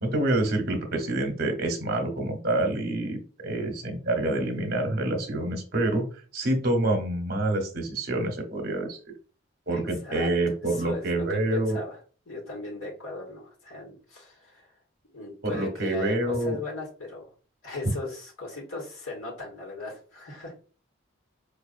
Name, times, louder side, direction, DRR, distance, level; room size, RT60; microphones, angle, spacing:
voice 1, 0.0-6.0 6.3-9.0 9.7-11.8 15.4-16.6, right 2 dB, 50° right, 4 dB, 0.9 m, -27 dB
voice 2, 9.7-10.3 10.8-12.0 12.3-14.7 15.1-17.3 17.6-20.5, left 2 dB, 85° left, -3 dB, 1.4 m, -38 dB
5.1 x 2.4 x 2.5 m, 0.38 s
head